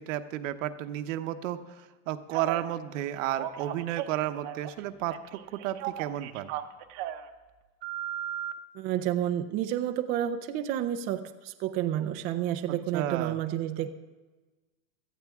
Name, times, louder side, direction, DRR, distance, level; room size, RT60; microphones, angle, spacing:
voice 1, 0.0-6.5 12.7-13.4, right 12 dB, 75° right, 9 dB, 1.0 m, -33 dB
Telephone, 2.3-2.7 3.2-4.8 5.1-7.3 7.8-8.5, right 12 dB, 40° right, 0.8 m, -36 dB
voice 2, 8.7-13.9, right 11 dB, 25° right, 7 dB, 0.4 m, -30 dB
17.5 x 13.0 x 3.6 m, 1.2 s
supercardioid pair, 160°, 39 cm